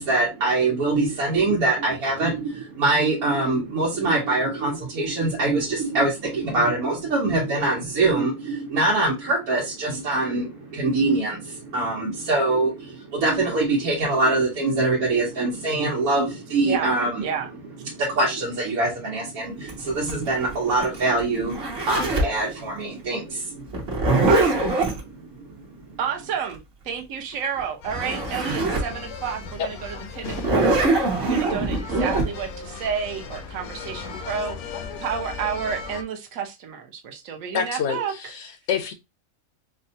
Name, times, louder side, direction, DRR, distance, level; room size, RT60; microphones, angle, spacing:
voice 1, 0.0-17.2 17.8-24.3 25.1-26.0, right 2 dB, 85° right, 1.4 m, -24 dB
Zipper (clothing), 19.7-22.4 23.7-25.0 27.6-27.7 27.9-28.9 29.4-29.5 30.3-32.3, right 2 dB, 50° right, 1.2 m, -22 dB
voice 2, 24.3-24.7 26.0-26.6 26.8-38.1, right 7 dB, 70° right, 1.1 m, -30 dB
sound 1, 27.8-36.0, left 4 dB, 85° left, 1.1 m, -37 dB
voice 3, 37.5-38.9, left 7 dB, 65° left, 0.7 m, -27 dB
4.6 x 2.2 x 2.6 m
omnidirectional pair, 1.5 m